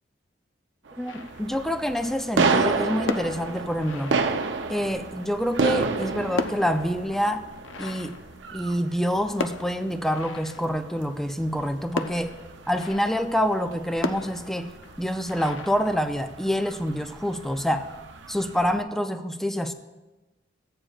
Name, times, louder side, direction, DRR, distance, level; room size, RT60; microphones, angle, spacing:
sound 1, 0.9-18.8, right 4 dB, 70° right, 0.6 m, -32 dB
voice 1, 1.0-4.2 4.7-7.4 7.8-8.2 8.5-12.3 12.7-14.7 15.0-17.9 18.3-19.7, equal, ahead, 8 dB, 0.4 m, -27 dB
sound 2, 1.1-1.8 2.9-4.8 5.8-9.0 9.4-11.0 12.0-13.4 14.0-16.5, left 3 dB, 90° left, 0.5 m, -36 dB
15.0 x 8.9 x 2.4 m, 1.1 s
head